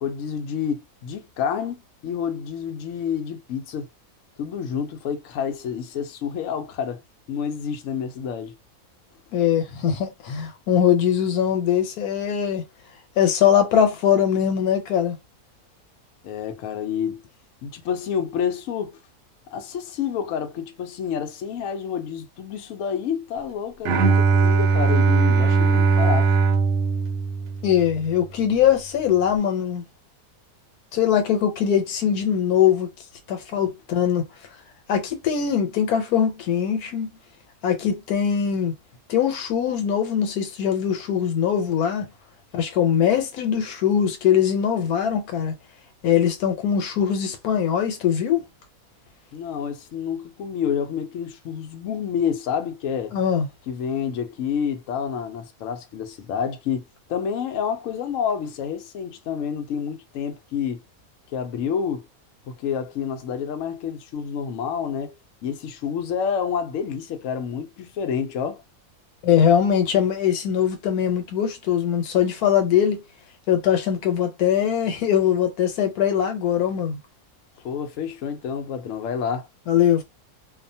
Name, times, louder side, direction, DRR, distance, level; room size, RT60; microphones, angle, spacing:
voice 1, 0.0-3.9 4.4-7.0 7.3-8.5 16.2-17.2 17.6-19.0 19.5-26.3 49.3-53.2 53.7-60.8 61.3-62.0 62.5-65.2 65.4-68.6 77.6-79.5, left 7 dB, 65° left, 0.9 m, -28 dB
voice 2, 9.3-12.6 13.2-15.2 27.6-29.8 30.9-32.9 33.3-34.2 34.9-37.1 37.6-38.7 39.1-42.1 42.5-45.5 46.0-48.4 53.1-53.5 69.2-73.0 73.5-77.0 79.7-80.0, left 9 dB, 85° left, 1.2 m, -21 dB
Bowed string instrument, 23.8-28.0, right 4 dB, 70° right, 1.0 m, -19 dB
2.7 x 2.1 x 2.6 m
omnidirectional pair, 1.6 m